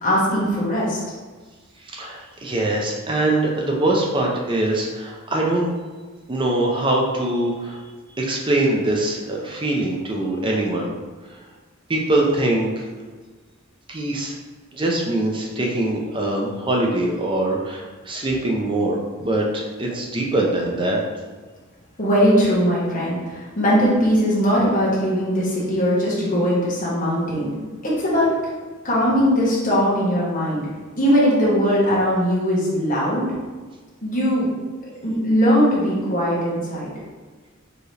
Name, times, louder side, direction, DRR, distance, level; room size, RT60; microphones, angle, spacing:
voice 1, 0.0-1.0 22.0-23.2 23.6-27.6 27.8-28.3 28.8-30.6 31.0-33.3 34.0-34.5 35.0-36.9, equal, 40° left, -7 dB, 1.4 m, -20 dB
voice 2, 1.9-5.7 6.3-7.8 8.2-10.9 11.9-12.9 13.9-14.3 14.7-21.0, right 1 dB, 25° right, -1 dB, 0.5 m, -23 dB
4.6 x 3.0 x 3.3 m, 1.4 s
head